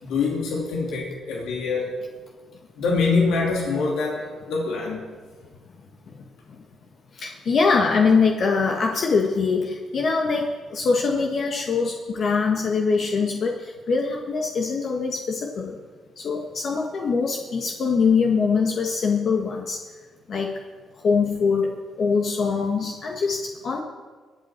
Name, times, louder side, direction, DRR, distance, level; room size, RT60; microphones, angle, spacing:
voice 1, 0.0-1.9 2.8-5.0, left 4 dB, 85° left, -3 dB, 3.0 m, -24 dB
voice 2, 7.1-15.8 16.2-19.8 20.3-20.6 21.0-23.8, left 5 dB, 55° left, 1 dB, 1.4 m, -23 dB
23.5 x 8.1 x 4.5 m, 1.4 s
cardioid pair, 90°, 0 cm